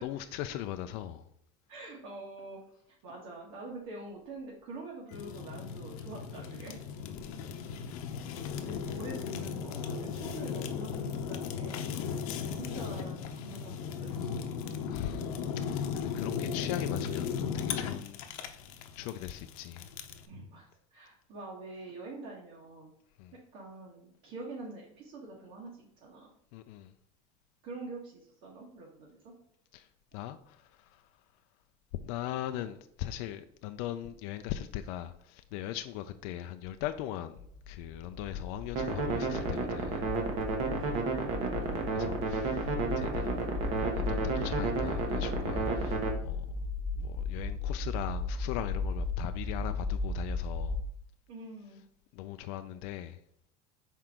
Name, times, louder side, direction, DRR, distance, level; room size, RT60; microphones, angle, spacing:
voice 1, 0.0-1.3 7.0-7.5 12.1-12.4 14.9-15.3 15.6-18.2 19.0-19.9 23.2-23.3 26.5-26.9 29.7-29.9 30.1-31.0 32.0-37.3 37.7-40.0 41.6-43.4 43.9-46.6 47.0-50.8 52.1-53.2, left 12 dB, 55° left, 0.4 m, -40 dB
voice 2, 1.7-6.8 8.6-14.5 20.3-20.6 20.9-22.9 23.5-26.3 27.6-29.3 40.5-41.5 51.3-51.8, right 2 dB, 55° right, 1.6 m, -45 dB
Fire, 5.1-20.3, left 7 dB, 80° left, 0.7 m, -37 dB
sound 1, 37.4-50.8, left 3 dB, 35° left, 1.0 m, -36 dB
sound 2, 38.8-46.1, right 4 dB, 35° right, 1.0 m, -32 dB
6.0 x 4.5 x 3.7 m
cardioid pair, 170°, 18 cm